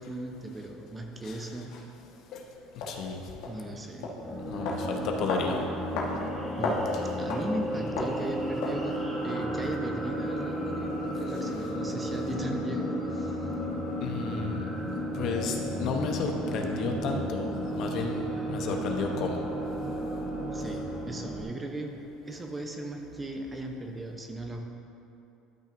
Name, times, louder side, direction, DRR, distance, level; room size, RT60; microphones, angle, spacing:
voice 1, 0.0-1.7 3.5-4.1 6.6-6.9 7.2-13.5 20.5-22.0 22.3-24.6, right 1 dB, 20° right, 3 dB, 0.7 m, -37 dB
sound 1, 1.7-1.8 2.8-2.9 3.4-3.6 4.0-4.2 4.7-4.8 5.3-5.5 6.0-6.1 6.4-6.9 7.3-7.5 8.0-8.2 8.6-8.8, left 3 dB, 80° left, 1.4 m, -32 dB
voice 2, 2.9-3.2 4.5-5.6 14.0-14.6 15.1-19.4, left 4 dB, 55° left, 2 dB, 0.9 m, -32 dB
sound 2, 4.2-21.4, equal, 10° left, 1.1 m, -33 dB
12.0 x 5.8 x 2.6 m, 2.7 s
supercardioid pair, 110°, 0 cm